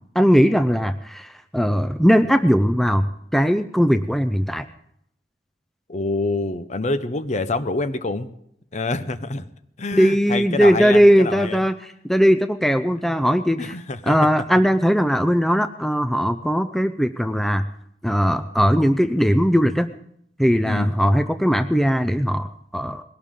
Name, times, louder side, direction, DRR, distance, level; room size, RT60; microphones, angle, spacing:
voice 1, 0.2-3.1 3.3-4.6 9.9-11.8 12.0-13.7 14.1-17.6 18.0-19.9 20.4-22.5 22.7-23.0, equal, ahead, 9 dB, 0.5 m, -19 dB
voice 2, 5.9-8.3 8.7-9.4 9.8-11.6 13.6-14.2 20.6-20.9, left 2 dB, 40° left, 11 dB, 0.9 m, -26 dB
21.0 x 17.0 x 3.8 m, 0.73 s
head